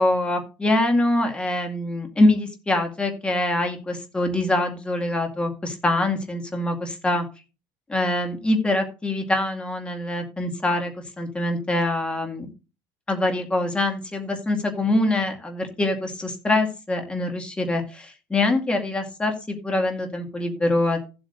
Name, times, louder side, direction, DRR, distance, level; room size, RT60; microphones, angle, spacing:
voice 1, 0.0-7.2 7.9-10.9 11.2-12.5 13.1-21.0, left 2 dB, 15° left, 4 dB, 2.2 m, -24 dB
15.0 x 7.9 x 2.6 m, 0.32 s
cardioid pair, 140°, 8 cm